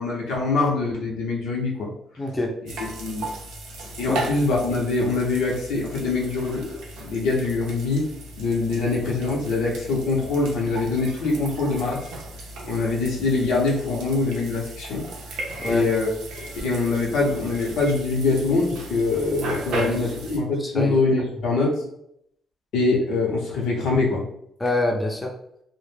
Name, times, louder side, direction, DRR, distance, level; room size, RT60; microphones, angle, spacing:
voice 1, 0.0-1.9 2.8-3.3 4.0-8.1 8.4-12.0 12.6-15.0 15.6-21.7 22.7-24.2, left 3 dB, 90° left, -3 dB, 0.7 m, -24 dB
voice 2, 2.2-2.5 4.1-4.2 15.6-15.9 19.7-20.0 20.6-21.0 24.6-25.3, left 2 dB, 15° left, 1 dB, 0.5 m, -25 dB
sound 1, 2.7-20.4, right 2 dB, 85° right, 0.5 m, -36 dB
2.1 x 2.0 x 3.1 m, 0.74 s
cardioid pair, 90°, 0 cm